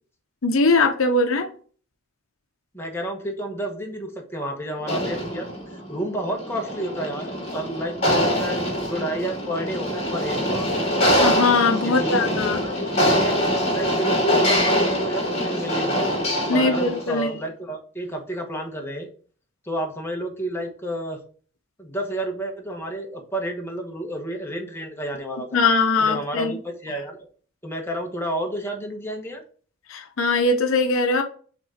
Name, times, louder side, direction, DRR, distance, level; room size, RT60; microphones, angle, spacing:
voice 1, 0.4-1.5 11.2-12.6 16.5-17.3 25.5-26.6 29.9-31.2, left 3 dB, 65° left, 5 dB, 0.7 m, -21 dB
voice 2, 2.7-5.5 5.9-8.6 8.9-10.8 11.8-13.4 13.7-16.2 16.5-19.1 19.6-21.2 21.8-25.5 26.0-27.3 27.6-29.4, right 1 dB, 10° left, 1 dB, 1.1 m, -30 dB
sound 1, 4.8-17.2, equal, 30° left, 2.7 m, -24 dB
6.0 x 3.7 x 4.3 m, 0.43 s
head